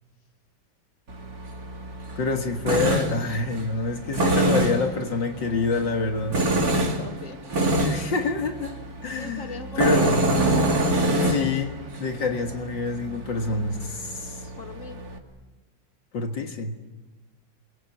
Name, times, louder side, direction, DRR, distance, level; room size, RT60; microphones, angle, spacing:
Tools, 1.1-15.2, right 1 dB, 50° right, 3.1 m, -26 dB
voice 1, 2.2-6.5 7.8-8.8 9.0-9.5 9.8-10.1 11.2-14.4 16.1-16.8, left 3 dB, 70° left, 4 dB, 2.4 m, -27 dB
voice 2, 6.7-7.4 9.1-11.0 11.3-11.6 14.6-15.0, left 2 dB, 40° left, 5 dB, 2.7 m, -41 dB
28.0 x 23.0 x 8.4 m, 1.1 s
omnidirectional pair, 2.1 m